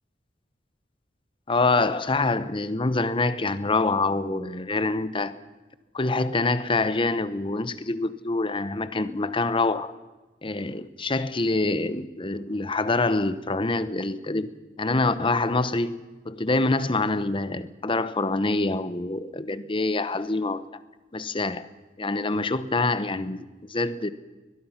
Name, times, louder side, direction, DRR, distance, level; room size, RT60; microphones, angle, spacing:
voice 1, 1.5-5.4 5.9-9.9 10.4-14.5 14.8-20.8 21.1-21.7 22.0-24.1, left 3 dB, 30° left, 14 dB, 1.0 m, -26 dB
22.5 x 21.0 x 5.8 m, 1.2 s
head